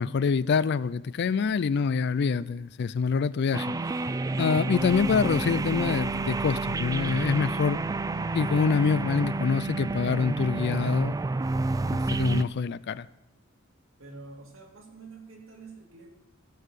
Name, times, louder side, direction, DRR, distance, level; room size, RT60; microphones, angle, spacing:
voice 1, 0.0-3.7 4.4-7.8 8.3-11.2 12.1-13.1, left 5 dB, 55° left, 0.4 m, -26 dB
sound 1, 3.5-12.4, right 3 dB, 15° right, 0.3 m, -29 dB
voice 2, 14.0-16.1, right 3 dB, 80° right, 2.3 m, -47 dB
14.5 x 5.6 x 7.4 m
head